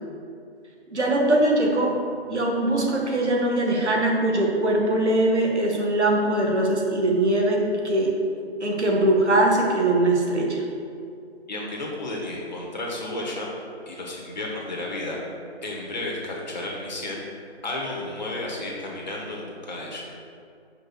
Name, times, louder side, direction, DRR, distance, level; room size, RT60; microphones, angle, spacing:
voice 1, 0.9-1.9 2.3-8.1 8.6-10.6, right 1 dB, 85° right, -1 dB, 1.9 m, -21 dB
voice 2, 11.5-13.5 13.9-15.2 15.6-17.2 17.6-20.1, left 2 dB, 40° left, -2 dB, 1.6 m, -32 dB
5.6 x 5.6 x 6.1 m, 2.4 s
figure-of-eight pair, 165°, 33 cm